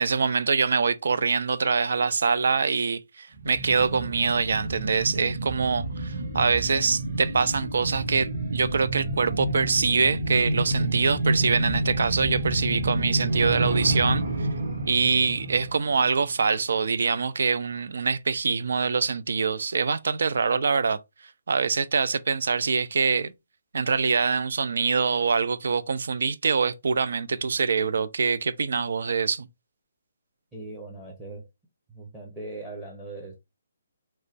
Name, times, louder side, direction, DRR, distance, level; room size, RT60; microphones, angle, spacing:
voice 1, 0.0-14.5 14.8-21.0 21.5-23.3 23.7-29.5, right 5 dB, 70° right, 0.4 m, -24 dB
sound 1, 3.3-16.6 16.9-17.0, right 1 dB, 50° right, 1.5 m, -29 dB
voice 2, 30.5-31.5 31.9-33.4, right 2 dB, 5° right, 0.7 m, -39 dB
3.0 x 2.2 x 4.0 m
hypercardioid pair, 165°, 0 cm